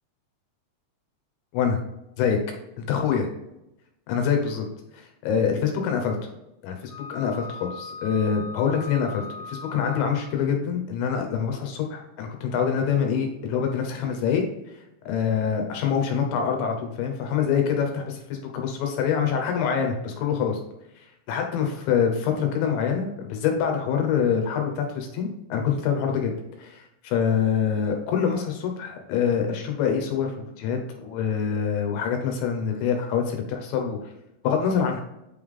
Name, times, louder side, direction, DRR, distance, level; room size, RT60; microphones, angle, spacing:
voice 1, 2.8-3.3 4.1-4.6 4.9-6.2 6.6-14.4 15.1-20.6 21.3-26.3 26.6-34.1 34.4-35.0, left 7 dB, 75° left, 4 dB, 2.9 m, -25 dB
Wind instrument woodwind instrument, 6.9-10.5, left 3 dB, 40° left, 1.6 m, -40 dB
8.7 x 3.4 x 3.6 m, 0.88 s
omnidirectional pair, 5.9 m